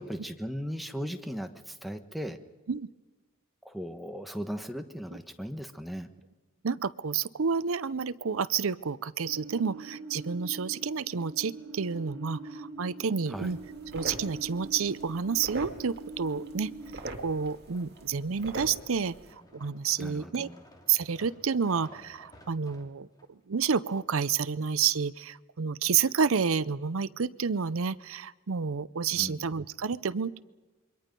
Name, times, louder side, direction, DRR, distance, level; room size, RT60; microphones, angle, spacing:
voice 1, 0.0-2.4 3.6-6.1 13.3-13.6 20.0-20.6 29.1-29.5, equal, ahead, 6 dB, 1.2 m, -37 dB
voice 2, 6.6-13.6 13.9-16.7 17.2-19.2 19.5-20.5 20.9-23.1 23.5-30.4, right 6 dB, 85° right, 17 dB, 0.6 m, -29 dB
sound 1, 9.3-17.0, right 2 dB, 70° right, 2.7 m, -44 dB
sound 2, 12.3-23.3 23.9-24.0, equal, 20° left, 2.6 m, -57 dB
sound 3, 13.3-19.3, right 2 dB, 50° right, 2.3 m, -44 dB
27.5 x 23.5 x 5.3 m, 1.2 s
head